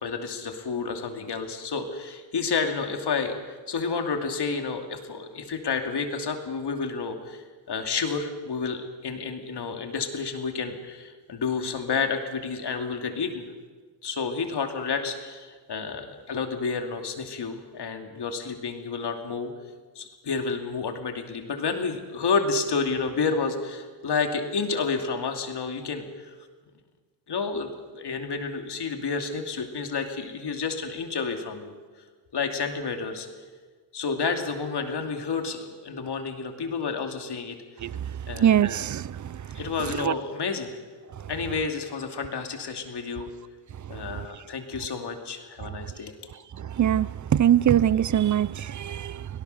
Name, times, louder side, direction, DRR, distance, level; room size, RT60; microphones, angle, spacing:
voice 1, 0.0-13.5 14.0-19.5 19.9-26.3 27.3-31.7 32.3-33.3 33.9-37.6 38.3-38.7 39.5-40.7 41.3-43.3 43.9-46.1, left 5 dB, 60° left, 2.7 m, -30 dB
voice 2, 38.4-39.4 40.0-40.1 46.8-49.3, right 10 dB, 40° right, 0.6 m, -22 dB
24.5 x 17.5 x 6.7 m
cardioid pair, 105°, 45 cm